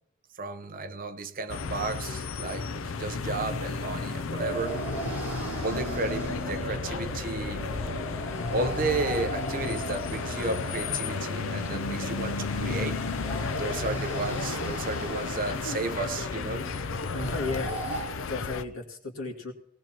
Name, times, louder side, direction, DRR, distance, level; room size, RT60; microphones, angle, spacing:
voice 1, 0.4-4.8 5.6-7.6 8.5-13.0 13.6-16.7, right 3 dB, 40° right, 0.9 m, -33 dB
sound 1, 1.5-18.6, left 4 dB, 70° left, 0.6 m, -33 dB
sound 2, 4.4-18.0, right 2 dB, 10° right, 7.3 m, -37 dB
voice 2, 17.1-17.8 18.1-19.5, left 3 dB, 90° left, 2.4 m, -34 dB
19.0 x 18.5 x 3.0 m
head